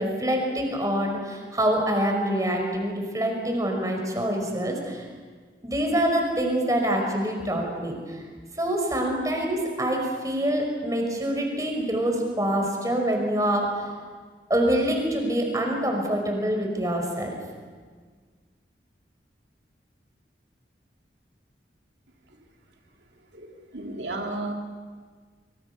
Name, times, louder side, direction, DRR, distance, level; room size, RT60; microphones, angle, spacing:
voice 1, 0.0-5.0 5.6-8.2 8.6-13.9 14.5-17.4, right 1 dB, 20° right, 2 dB, 5.4 m, -25 dB
voice 2, 23.3-24.5, right 2 dB, 90° right, 1 dB, 3.0 m, -33 dB
26.0 x 24.5 x 6.9 m, 1.5 s
head